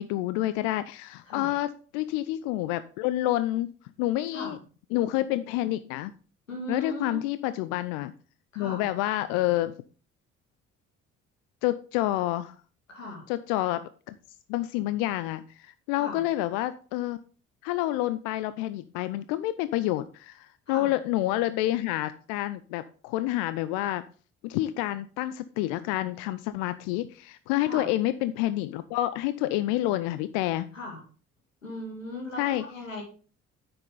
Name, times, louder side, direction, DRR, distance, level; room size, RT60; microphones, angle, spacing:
voice 1, 0.0-3.7 4.0-4.6 4.9-6.1 6.7-8.1 8.6-9.7 11.6-12.6 13.3-14.2 14.5-17.2 17.6-24.0 24.4-30.7 32.4-32.6, left 15 dB, 55° left, 14 dB, 0.5 m, -28 dB
voice 2, 6.5-7.3 8.5-8.9 12.9-13.3 16.0-16.2 20.7-20.9 27.6-27.9 30.7-31.0 31.6-33.0, left 1 dB, 85° left, 1 dB, 2.2 m, -38 dB
9.6 x 6.8 x 3.8 m, 0.40 s
figure-of-eight pair, 50°, 38 cm